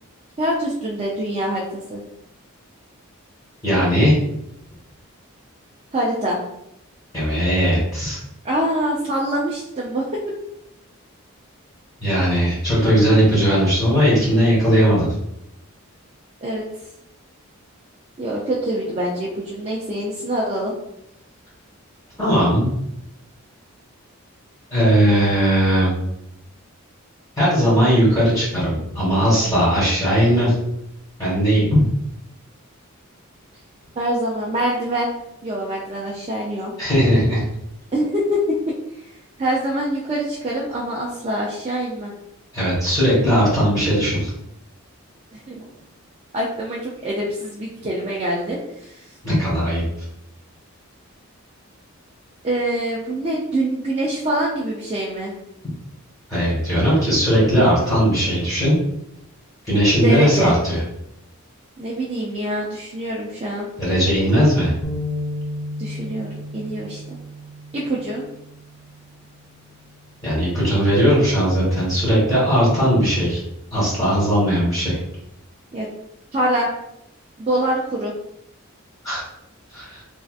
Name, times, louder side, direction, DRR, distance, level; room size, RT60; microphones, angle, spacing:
voice 1, 0.4-2.0 5.9-6.4 8.4-10.4 16.4-16.6 18.2-20.7 34.0-35.1 35.4-36.7 37.9-38.5 39.4-42.1 45.5-45.6 46.3-49.0 52.4-55.3 60.0-60.5 61.8-63.7 65.8-67.0 67.7-68.3 75.7-75.9 76.3-76.7 77.4-78.1, right 1 dB, 30° right, -5 dB, 0.4 m, -24 dB
voice 2, 3.6-4.1 7.1-8.2 12.0-15.1 22.2-22.7 24.7-25.9 27.4-30.5 31.2-31.8 36.8-37.4 42.5-44.3 49.2-49.8 56.3-58.8 59.7-60.8 63.8-64.7 70.2-73.4 73.7-75.0 79.0-79.2 79.7-80.0, equal, 15° left, -10 dB, 1.4 m, -18 dB
sound 1, 64.8-69.1 69.6-69.8 70.6-71.1, left 1 dB, 65° left, 0.6 m, -33 dB
3.3 x 2.6 x 2.3 m, 0.81 s
head